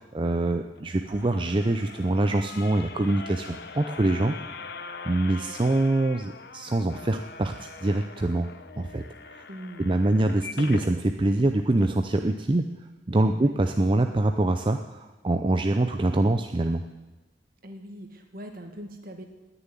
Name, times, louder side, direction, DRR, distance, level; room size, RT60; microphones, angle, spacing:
voice 1, 0.0-4.4 5.1-8.5 8.8-9.4 9.8-12.6 13.1-16.8, right 2 dB, 25° right, 6 dB, 0.5 m, -24 dB
sound 1, 0.8-10.9 11.4-11.5 11.8-11.9, left 4 dB, 60° left, 1.0 m, -42 dB
voice 2, 9.5-10.0 13.2-13.6 17.6-19.3, equal, 50° right, 5 dB, 1.9 m, -42 dB
18.5 x 7.0 x 9.9 m, 1.2 s
head